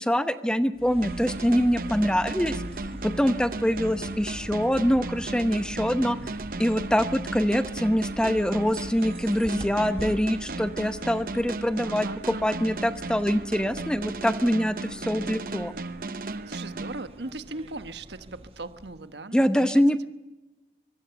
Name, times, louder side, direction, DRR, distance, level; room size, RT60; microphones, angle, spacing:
voice 1, 0.0-2.6 3.0-6.2 6.6-15.7 19.3-20.1, equal, 5° left, 10 dB, 0.9 m, -24 dB
sound 1, 0.7-19.2, right 1 dB, 30° right, 1.2 m, -43 dB
sound 2, 1.0-17.6, right 2 dB, 50° right, 0.9 m, -36 dB
voice 2, 11.8-12.6 16.5-20.1, right 2 dB, 75° right, 11 dB, 1.2 m, -39 dB
24.5 x 21.5 x 7.0 m, 1.1 s
head